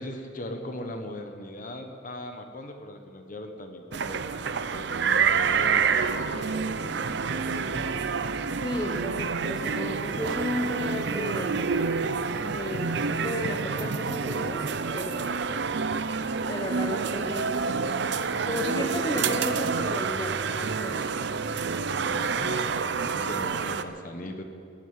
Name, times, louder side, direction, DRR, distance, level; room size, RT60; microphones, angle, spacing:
voice 1, 0.0-8.0 18.2-18.9 21.9-24.4, left 1 dB, 45° left, 5 dB, 1.1 m, -40 dB
sound 1, 3.9-23.8, right 5 dB, 60° right, 0.6 m, -28 dB
voice 2, 8.6-11.6 12.4-14.7 14.9-15.5 16.5-17.8 18.4-21.1, left 1 dB, 20° left, 3 dB, 1.1 m, -33 dB
15.5 x 8.2 x 9.7 m, 2.5 s
head